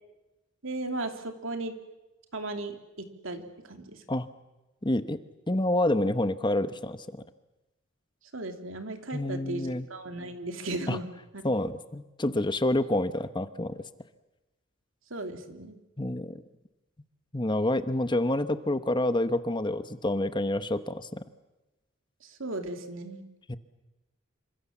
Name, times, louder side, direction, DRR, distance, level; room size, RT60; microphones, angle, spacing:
voice 1, 0.6-1.7 2.3-4.0 8.3-11.4 15.1-15.8 22.2-23.2, right 2 dB, 75° right, 6 dB, 2.9 m, -36 dB
voice 2, 4.8-5.2 5.5-7.2 9.1-9.9 10.9-11.0 11.4-13.8 16.0-16.4 17.3-21.2 23.5-23.6, left 1 dB, 25° left, 11 dB, 1.0 m, -28 dB
28.0 x 25.5 x 7.3 m, 1.0 s
head